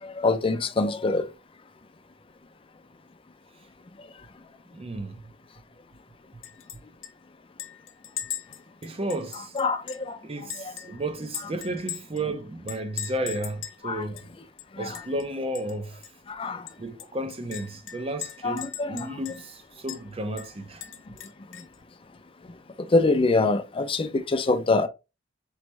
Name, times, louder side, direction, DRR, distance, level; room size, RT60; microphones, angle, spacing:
voice 1, 0.0-1.3 9.3-10.7 11.4-11.5 13.8-14.1 14.7-15.0 16.3-16.7 18.4-19.2 21.5-21.6 22.8-24.9, left 3 dB, 25° left, 0.4 m, -25 dB
voice 2, 4.7-5.2 8.8-9.5 10.2-14.2 14.8-16.0 16.8-20.9, right 1 dB, 30° right, 0.6 m, -33 dB
Chink clink, 6.4-6.8 7.0-7.1 7.6-10.1 10.5-12.2 12.7-13.8 14.2-14.3 14.6-15.2 15.5-15.7 16.0-16.1 16.7-19.5 19.9-20.0 20.4-21.8, left 10 dB, 70° left, 0.7 m, -39 dB
4.3 x 3.1 x 3.2 m
head